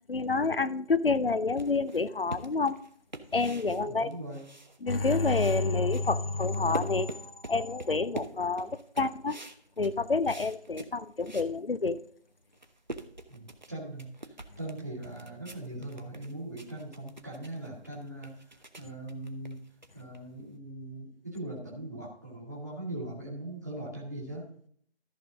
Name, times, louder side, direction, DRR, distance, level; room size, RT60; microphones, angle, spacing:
voice 1, 0.1-2.8 3.3-4.1 4.8-9.4 9.8-12.0, left 3 dB, 60° left, 15 dB, 0.5 m, -28 dB
sound 1, 1.6-5.0 5.2-11.5 12.0-12.1 12.4-20.5, right 2 dB, 45° right, 0.7 m, -45 dB
voice 2, 3.8-4.4 13.3-14.1 14.6-18.4 18.8-19.6 19.9-24.4, right 1 dB, 15° right, -6 dB, 1.3 m, -40 dB
13.5 x 5.3 x 3.7 m, 0.62 s
figure-of-eight pair, 170°, 33 cm